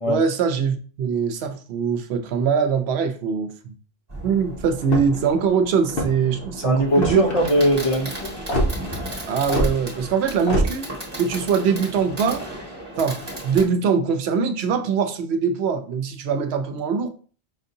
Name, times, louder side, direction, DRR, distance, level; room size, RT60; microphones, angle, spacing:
voice 1, 0.1-3.7 4.2-7.3 9.3-10.9 11.2-12.5 13.0-17.1, right 6 dB, 90° right, 0.8 m, -22 dB
Fireworks, 4.1-13.6, right 1 dB, 25° right, 1.4 m, -35 dB
sound 1, 4.8-5.3 5.8-6.3 6.9-7.4 8.5-8.7 9.5-9.7 10.5-10.7, right 1 dB, 60° left, 1.1 m, -22 dB
voice 2, 6.6-8.3, equal, 35° left, 0.8 m, -20 dB
5.7 x 2.6 x 2.6 m
omnidirectional pair, 1.1 m